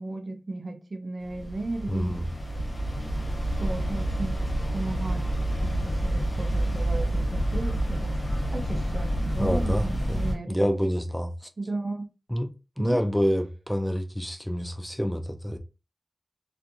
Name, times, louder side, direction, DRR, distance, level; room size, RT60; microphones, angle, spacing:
voice 1, 0.0-2.1 3.6-4.4 4.7-5.2 5.6-8.1 8.5-10.8 11.6-12.1 12.8-13.0, right 2 dB, 65° right, 0.5 m, -35 dB
sound 1, 1.2-10.3, right 1 dB, 75° left, 1.1 m, -28 dB
voice 2, 1.9-2.2 9.4-11.5 12.3-12.5 12.8-15.6, equal, 5° left, 0.3 m, -27 dB
2.4 x 2.2 x 2.7 m
wide cardioid pair, 75°, 0 cm